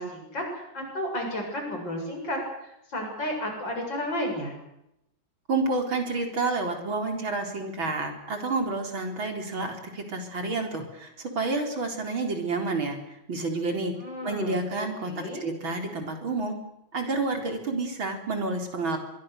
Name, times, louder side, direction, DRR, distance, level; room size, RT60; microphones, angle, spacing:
voice 1, 0.0-2.4 2.9-4.5 14.0-15.4, left 1 dB, 60° left, 2 dB, 8.2 m, -32 dB
voice 2, 5.5-13.9 14.2-16.6 16.9-19.0, right 3 dB, 70° right, 3 dB, 5.0 m, -29 dB
25.0 x 23.0 x 6.7 m, 0.83 s
omnidirectional pair, 2.2 m